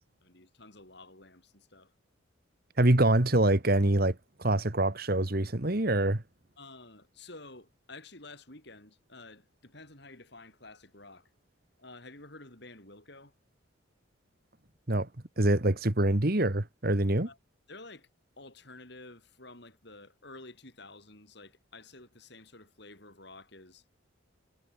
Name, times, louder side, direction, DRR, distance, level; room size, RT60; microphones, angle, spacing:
voice 1, 0.2-1.9 6.6-11.3 11.8-13.3 17.3-17.4 17.7-18.1 18.4-23.8, left 2 dB, 55° left, 5.3 m, -51 dB
voice 2, 2.8-6.2 14.9-15.1 15.4-17.3, right 1 dB, 45° right, 1.7 m, -25 dB
head